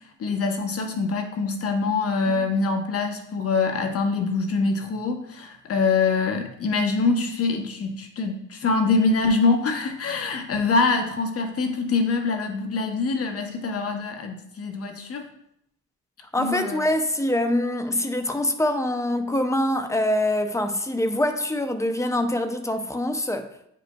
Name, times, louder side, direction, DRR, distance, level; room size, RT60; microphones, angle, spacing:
voice 1, 0.2-15.2 16.4-16.8, left 4 dB, 50° left, 0.8 m, -24 dB
voice 2, 16.3-23.5, left 1 dB, 10° left, 0.5 m, -24 dB
8.8 x 5.1 x 2.2 m
cardioid pair, 120°, 31 cm